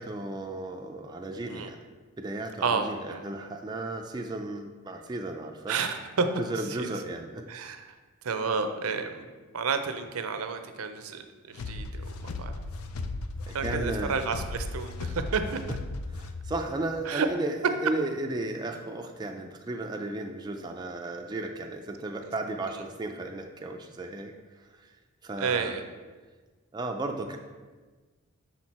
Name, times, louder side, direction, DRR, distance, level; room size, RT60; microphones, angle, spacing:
voice 1, 0.0-1.8 2.2-5.8 6.4-7.4 13.5-14.1 16.1-17.5 17.8-24.3 24.6-24.9 25.2-25.8 26.7-27.4, right 2 dB, 20° right, 3 dB, 0.3 m, -34 dB
voice 2, 2.6-3.2 5.7-6.3 6.6-6.9 7.5-7.9 8.2-9.3 9.5-12.5 13.5-15.6 17.1-17.3 25.4-25.8, right 5 dB, 80° right, 8 dB, 0.6 m, -31 dB
sound 1, 11.6-16.6, left 2 dB, 75° left, 0.5 m, -36 dB
6.4 x 4.4 x 4.2 m, 1.4 s
head